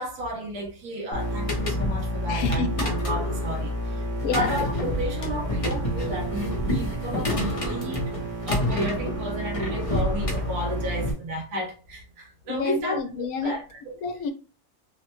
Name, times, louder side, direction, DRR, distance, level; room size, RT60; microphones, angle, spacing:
voice 1, 0.0-8.1 8.5-14.0, equal, 90° right, 1.4 m, -32 dB
sound 1, 1.1-11.1, equal, 60° right, 1.2 m, -31 dB
sound 2, 1.2-11.1, left 1 dB, 45° left, 0.4 m, -30 dB
voice 2, 2.3-2.9 4.2-4.5 12.5-13.5 14.0-14.3, left 5 dB, 80° left, 1.1 m, -29 dB
3.4 x 2.1 x 3.0 m
omnidirectional pair, 1.5 m